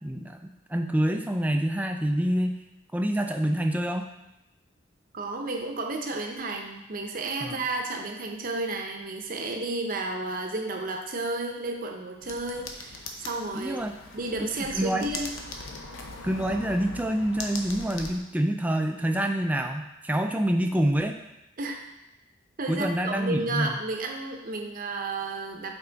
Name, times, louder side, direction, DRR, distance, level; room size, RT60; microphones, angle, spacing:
voice 1, 0.0-2.5 2.9-4.1 7.4-7.6 13.5-13.9 14.7-15.1 16.2-21.2 22.7-23.7, right 1 dB, 10° right, 4 dB, 0.3 m, -27 dB
voice 2, 5.1-13.8 14.1-15.3 21.6-21.8 22.6-25.7, right 2 dB, 45° right, 2 dB, 0.7 m, -32 dB
sound 1, 12.2-18.2, left 3 dB, 80° left, 0.7 m, -40 dB
5.7 x 4.4 x 3.9 m, 0.90 s
head